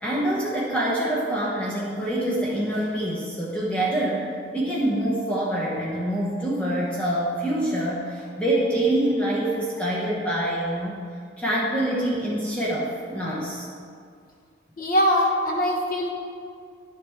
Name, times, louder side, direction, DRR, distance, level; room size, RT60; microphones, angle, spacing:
voice 1, 0.0-4.3 4.5-11.0 11.4-13.7, right 1 dB, 5° left, -6 dB, 1.0 m, -25 dB
voice 2, 14.8-16.1, equal, 50° left, 0 dB, 1.1 m, -22 dB
10.5 x 7.3 x 3.6 m, 2.2 s
head